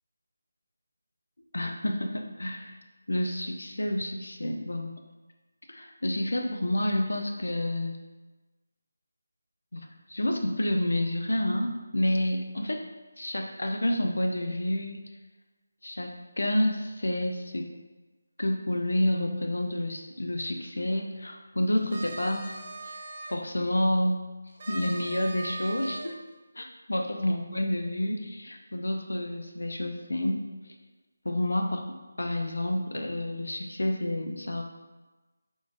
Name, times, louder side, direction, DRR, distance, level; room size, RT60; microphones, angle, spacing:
voice 1, 1.5-2.7 3.1-4.9 5.7-7.9 9.7-12.8 13.2-15.0 15.8-17.7 18.4-22.6 22.8-22.9 23.3-24.2 24.7-26.1 26.6-30.4 31.2-31.8 32.2-34.6, left 1 dB, 70° left, 3 dB, 0.5 m, -29 dB
sound 1, 21.8-23.3 24.6-26.1, right 2 dB, 35° right, 0.8 m, -39 dB
4.9 x 3.6 x 2.6 m, 1.2 s
figure-of-eight pair, 160°, 0 cm